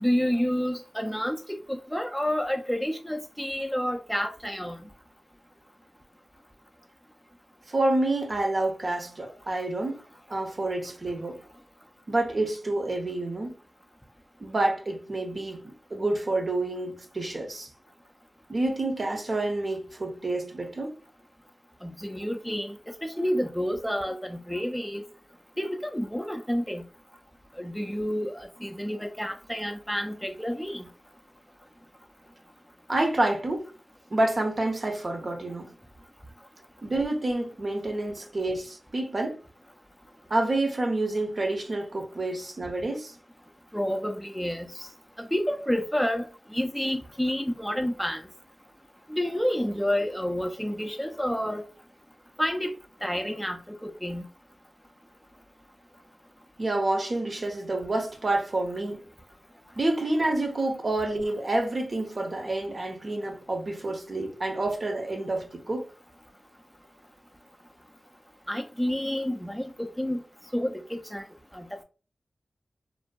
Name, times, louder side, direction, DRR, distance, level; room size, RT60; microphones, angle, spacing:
voice 1, 0.0-4.8 21.8-25.0 25.6-26.8 27.6-30.9 43.7-44.9 45.2-48.2 49.1-51.6 52.4-52.7 53.0-54.3 68.5-70.2 70.5-71.3 71.5-71.8, equal, 5° left, 0.3 m, -29 dB
voice 2, 7.7-10.0 10.3-11.4 12.1-13.6 14.4-17.7 18.5-21.0 32.9-33.7 34.1-35.7 36.8-39.4 40.3-43.1 56.6-59.0 59.8-65.9, right 2 dB, 50° right, 0.6 m, -28 dB
2.5 x 2.2 x 2.2 m
cardioid pair, 50°, 0 cm